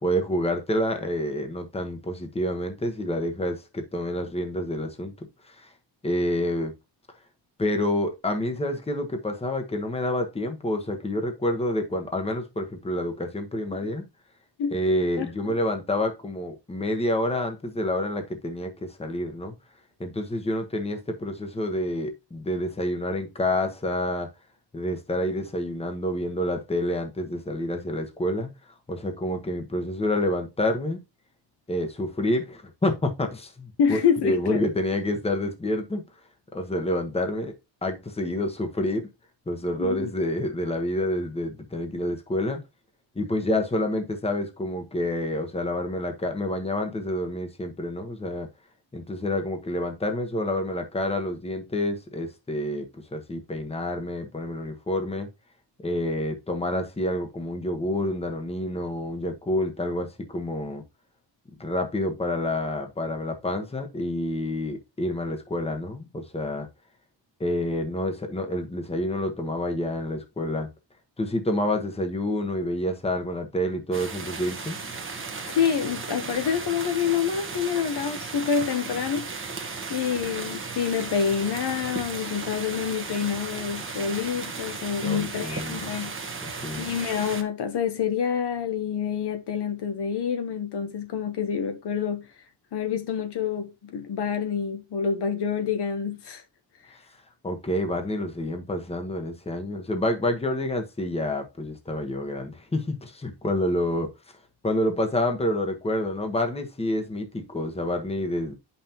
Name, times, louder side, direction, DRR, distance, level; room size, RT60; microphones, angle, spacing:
voice 1, 0.0-5.7 6.0-6.7 7.6-14.0 14.7-19.5 20.0-24.3 24.7-28.5 28.9-31.0 31.7-36.0 36.5-37.5 37.8-39.1 39.5-42.6 43.1-48.5 48.9-55.3 55.8-60.8 61.6-66.7 67.4-70.7 71.2-74.8 85.0-85.8 86.4-86.9 96.9-97.0 97.4-104.1 104.6-108.5, left 1 dB, 15° left, 1.2 m, -28 dB
voice 2, 15.2-15.6 33.8-34.6 39.8-40.1 75.5-79.3 79.9-86.1 86.8-92.3 92.7-96.4, left 7 dB, 60° left, 1.1 m, -27 dB
sound 1, 73.9-87.4, right 4 dB, 25° right, 1.2 m, -35 dB
8.3 x 5.7 x 2.9 m
wide cardioid pair, 140°, 45 cm